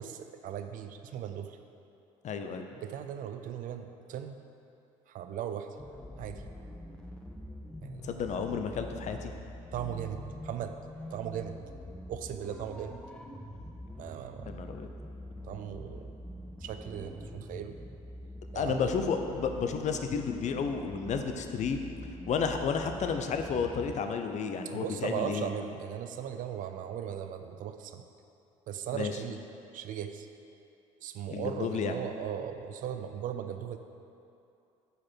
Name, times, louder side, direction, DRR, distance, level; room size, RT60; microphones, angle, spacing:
voice 1, 0.0-1.6 2.7-4.4 5.1-5.7 6.2-6.4 7.8-8.1 9.7-10.8 11.1-11.6 12.1-13.0 14.0-14.6 15.4-16.1 16.6-17.7 18.5-18.9 24.7-28.0 28.7-29.4 29.7-30.3 31.0-33.8, right 9 dB, 55° right, 8 dB, 0.5 m, -38 dB
voice 2, 2.2-2.7 8.0-9.3 14.4-14.9 18.5-21.8 22.3-25.5 28.9-29.2 31.3-31.9, left 6 dB, 45° left, 6 dB, 0.6 m, -32 dB
sound 1, 5.8-24.0, left 1 dB, 5° left, 0.6 m, -45 dB
6.5 x 4.7 x 4.4 m, 2.6 s
hypercardioid pair, 65°, 17 cm